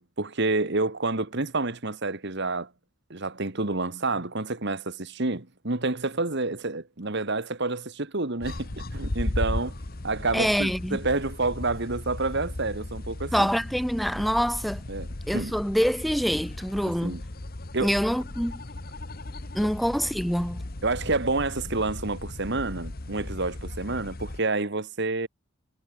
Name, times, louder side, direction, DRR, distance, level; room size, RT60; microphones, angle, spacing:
voice 1, 0.0-2.7 3.1-9.8 10.0-13.5 14.9-15.1 15.3-15.5 16.8-17.2 17.7-17.9 20.8-25.3, right 3 dB, 50° right, 1.6 m, -29 dB
sound 1, 8.4-24.4, left 1 dB, 45° left, 1.3 m, -36 dB
voice 2, 10.3-11.0 13.3-14.8 15.3-17.2 17.8-18.6 19.5-20.6, equal, ahead, 0.6 m, -25 dB
head